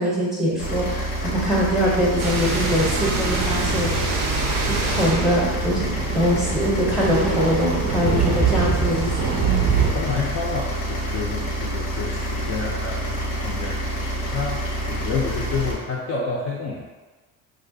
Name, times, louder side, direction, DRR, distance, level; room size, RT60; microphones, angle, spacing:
voice 1, 0.0-3.9 4.7-9.1, equal, ahead, -5 dB, 0.7 m, -23 dB
sound 1, 0.6-15.7, right 1 dB, 90° left, 0.8 m, -27 dB
sound 2, 2.2-9.9, right 5 dB, 40° right, 0.5 m, -24 dB
voice 2, 9.9-16.9, left 4 dB, 35° left, -4 dB, 0.4 m, -29 dB
2.3 x 2.1 x 2.6 m, 1.2 s
hypercardioid pair, 70°, 43 cm